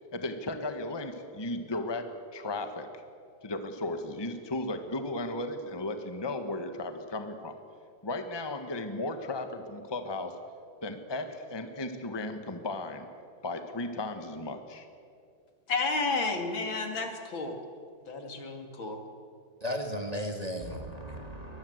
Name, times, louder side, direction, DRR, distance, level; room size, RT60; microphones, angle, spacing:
voice 1, 0.0-2.9 3.4-7.5 8.0-10.4 10.8-13.1 13.4-14.9, left 2 dB, 15° left, 7 dB, 1.3 m, -35 dB
voice 2, 15.7-17.5 18.1-19.0, left 3 dB, 80° left, 4 dB, 3.1 m, -31 dB
voice 3, 19.6-21.6, equal, 20° right, 3 dB, 2.1 m, -35 dB
23.5 x 20.5 x 8.0 m, 2.3 s
omnidirectional pair, 2.1 m